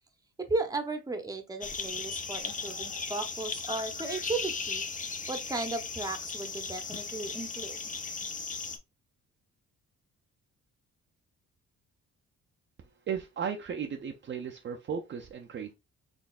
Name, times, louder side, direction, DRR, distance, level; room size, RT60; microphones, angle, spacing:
voice 1, 0.5-4.8 5.3-7.8, right 3 dB, 10° right, 0.8 m, -35 dB
sound 1, 1.6-8.8, left 5 dB, 25° left, 0.6 m, -37 dB
voice 2, 13.1-15.7, right 7 dB, 40° right, 0.5 m, -35 dB
4.1 x 3.2 x 2.4 m
cardioid pair, 90°, 30 cm